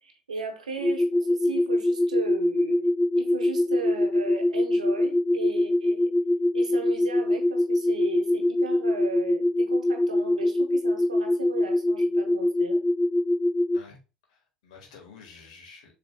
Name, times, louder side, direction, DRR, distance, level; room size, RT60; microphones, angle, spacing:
voice 1, 0.0-6.1 6.5-12.8, right 5 dB, 90° right, 0.9 m, -37 dB
sound 1, 0.8-13.8, left 1 dB, ahead, 0.3 m, -23 dB
voice 2, 14.3-15.9, left 5 dB, 75° left, 1.6 m, -49 dB
7.1 x 3.4 x 2.2 m
hypercardioid pair, 65°, 4 cm